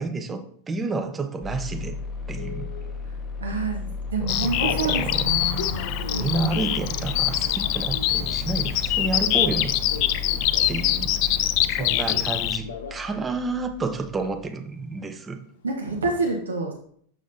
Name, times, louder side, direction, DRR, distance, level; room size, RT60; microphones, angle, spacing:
voice 1, 0.0-2.0 2.3-2.7 4.2-5.6 6.2-9.8 10.7-11.4 11.7-15.4, right 3 dB, 15° right, 7 dB, 0.6 m, -30 dB
sound 1, 1.4-14.5, left 2 dB, 20° left, 0.7 m, -35 dB
Telephone, 2.4-2.9 3.5-3.7 4.0-4.9 5.4-10.9 11.2-12.3 12.6-13.0 13.3-13.4 13.7-14.3, left 4 dB, 65° left, 0.8 m, -38 dB
voice 2, 3.4-5.8 6.1-6.5 15.6-16.7, right 3 dB, 70° right, 1 dB, 0.8 m, -28 dB
Bird vocalization bird call bird song, 4.3-12.6, left 13 dB, 45° left, 0.4 m, -24 dB
7.1 x 5.1 x 2.7 m, 0.62 s
figure-of-eight pair, 90°, 0 cm